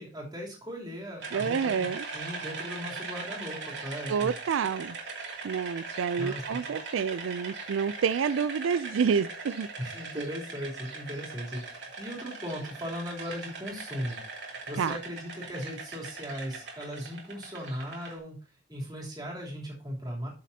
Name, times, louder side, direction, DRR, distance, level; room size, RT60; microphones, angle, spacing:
voice 1, 0.0-4.3 6.1-6.7 9.8-18.3 18.7-20.3, equal, 20° right, 3.2 m, -38 dB
sound 1, 1.2-18.1, right 4 dB, 65° right, 2.6 m, -40 dB
voice 2, 1.3-2.0 4.1-4.9 5.4-9.7 14.8-14.9, right 6 dB, 90° right, 0.4 m, -28 dB
13.0 x 6.6 x 2.8 m
head